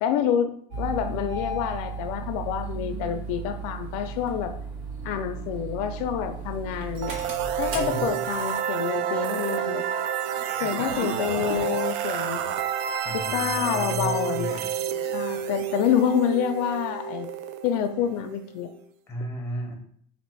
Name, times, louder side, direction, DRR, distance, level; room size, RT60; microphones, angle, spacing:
voice 1, 0.0-4.5 5.0-7.2 7.6-9.8 10.6-12.4 13.1-17.3 17.6-18.7, left 9 dB, 75° left, 9 dB, 0.4 m, -27 dB
Engine starting, 0.7-8.6, right 3 dB, 90° right, 1.4 m, -35 dB
sound 1, 7.0-18.8, right 9 dB, 60° right, 0.4 m, -30 dB
voice 2, 7.8-8.1 13.0-14.7 19.1-19.7, equal, 10° left, 1 dB, 0.9 m, -33 dB
3.3 x 2.5 x 4.4 m, 0.62 s
cardioid pair, 150°, 21 cm